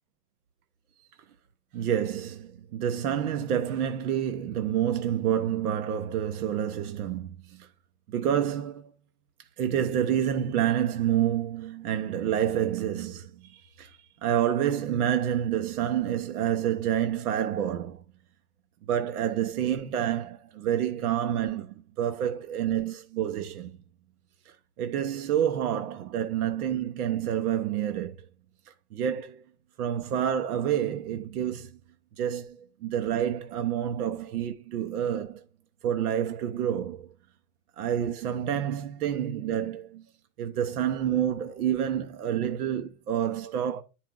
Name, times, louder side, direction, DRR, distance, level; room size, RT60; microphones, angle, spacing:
voice 1, 1.7-7.7 8.1-8.9 9.6-18.0 18.9-23.7 24.5-28.2 28.7-29.4 29.8-31.7 32.2-35.4 35.8-37.1 37.8-40.1 40.4-43.8, right 10 dB, 70° right, 1.0 m, -28 dB
10.0 x 4.6 x 3.7 m
supercardioid pair, 170°, 46 cm